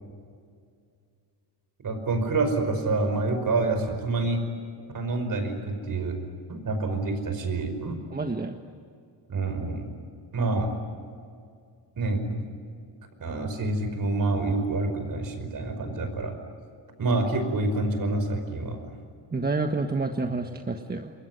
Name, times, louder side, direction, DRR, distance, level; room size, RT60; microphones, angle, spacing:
voice 1, 1.8-4.4 4.9-6.2 6.5-8.0 9.3-9.9 10.3-10.7 12.0-12.4 13.2-16.3 17.0-18.8, right 2 dB, 50° right, 8 dB, 5.3 m, -27 dB
voice 2, 8.1-8.5 19.3-21.1, right 3 dB, 20° right, 5 dB, 1.4 m, -28 dB
28.5 x 22.0 x 9.6 m, 2.3 s
cardioid pair, 120°, 43 cm